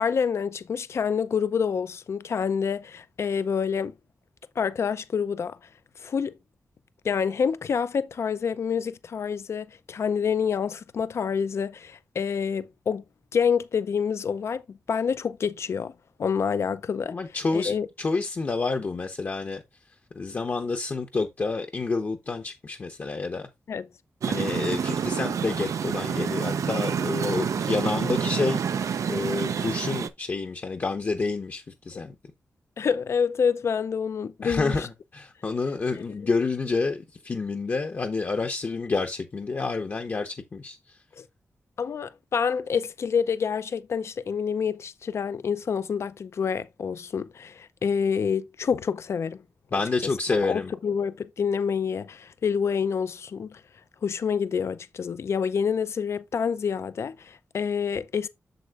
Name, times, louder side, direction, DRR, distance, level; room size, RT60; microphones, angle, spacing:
voice 1, 0.0-3.9 4.6-5.6 6.0-6.4 7.0-13.0 13.3-15.9 16.2-17.2 17.5-17.9 23.7-23.8 32.8-34.9 35.9-36.3 41.2-41.3 41.8-49.4 50.4-53.6 54.0-58.3, left 6 dB, 55° left, 0.5 m, -27 dB
voice 2, 17.1-19.6 20.1-23.5 24.3-28.6 29.1-32.1 34.4-40.8 49.7-50.7, left 4 dB, 40° left, 0.8 m, -29 dB
sound 1, 24.2-30.1, right 7 dB, 85° right, 0.6 m, -28 dB
7.8 x 7.4 x 2.4 m
wide cardioid pair, 175°, 5 cm